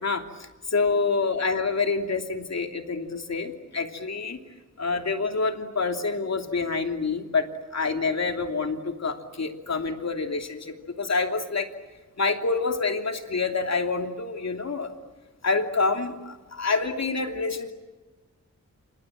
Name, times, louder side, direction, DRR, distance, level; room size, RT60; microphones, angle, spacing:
voice 1, 0.0-4.4 4.8-7.5 7.7-11.7 12.2-14.9 15.4-17.7, left 4 dB, 60° left, 4 dB, 3.0 m, -27 dB
29.0 x 27.5 x 7.5 m, 1.2 s
wide cardioid pair, 100°, 30 cm